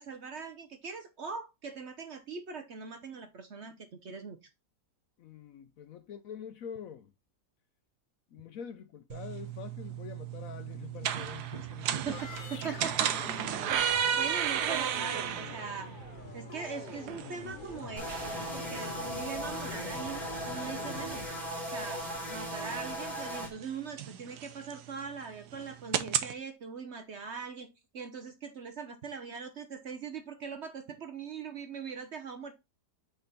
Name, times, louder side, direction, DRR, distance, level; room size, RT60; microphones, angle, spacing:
voice 1, 0.0-4.4 12.0-13.1 13.7-13.9 14.2-15.9 16.3-21.2 21.7-22.0 22.3-32.5, right 5 dB, 55° right, 0.9 m, -41 dB
voice 2, 5.2-7.1 8.3-12.2, left 8 dB, 65° left, 0.9 m, -45 dB
sound 1, 9.1-26.3, right 9 dB, 75° right, 1.2 m, -35 dB
sound 2, 12.1-21.3, left 5 dB, 45° left, 0.7 m, -45 dB
sound 3, 18.0-23.5, equal, ahead, 2.1 m, -38 dB
7.6 x 3.7 x 4.0 m
omnidirectional pair, 1.8 m